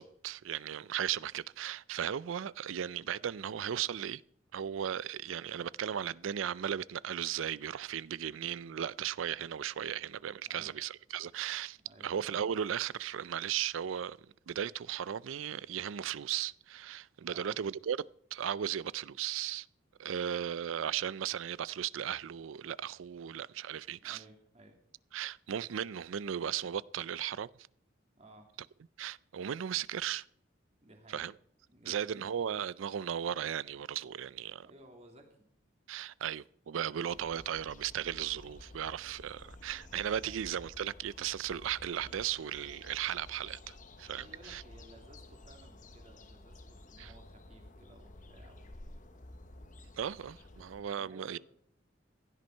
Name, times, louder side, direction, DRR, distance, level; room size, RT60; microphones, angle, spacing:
voice 1, 0.0-4.2 4.5-11.8 12.0-14.2 14.5-18.1 18.3-19.7 20.0-24.2 25.1-27.5 29.0-30.3 31.1-31.3 31.9-34.7 35.9-44.6 47.0-47.1 50.0-51.4, right 9 dB, 80° right, 0.4 m, -36 dB
voice 2, 10.4-10.8 11.8-12.1 17.2-17.6 24.0-24.8 28.2-28.5 30.8-31.3 31.7-32.2 34.6-35.5 40.2-40.4 44.2-48.9 50.5-50.7 51.0-51.4, right 1 dB, 35° right, 2.4 m, -57 dB
sound 1, 37.1-50.8, left 2 dB, 40° left, 1.1 m, -53 dB
16.0 x 10.5 x 4.5 m
head